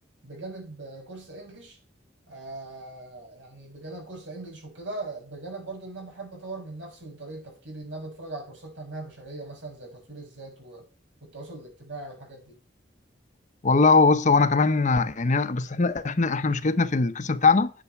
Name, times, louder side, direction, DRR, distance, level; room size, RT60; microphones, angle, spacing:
voice 1, 0.2-1.8 2.3-10.9 11.2-12.6, right 2 dB, 80° right, 6.6 m, -40 dB
voice 2, 13.6-17.7, left 4 dB, 40° left, 0.8 m, -21 dB
10.0 x 6.3 x 4.6 m
head